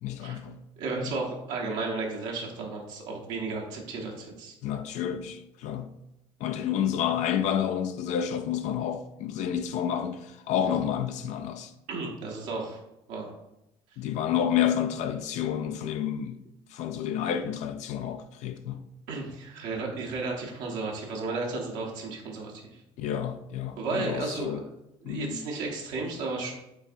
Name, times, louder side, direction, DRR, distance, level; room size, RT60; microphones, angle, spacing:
voice 1, 0.0-0.6 4.6-5.9 6.4-11.7 14.0-16.4 16.7-18.8 23.0-24.6 25.0-25.4, left 9 dB, 70° left, 0.4 m, -29 dB
voice 2, 0.8-4.5 11.9-12.8 13.1-13.3 19.1-22.8 23.8-24.6 25.0-26.5, right 3 dB, 80° right, 1.0 m, -33 dB
5.5 x 3.4 x 2.6 m
supercardioid pair, 70°, 13 cm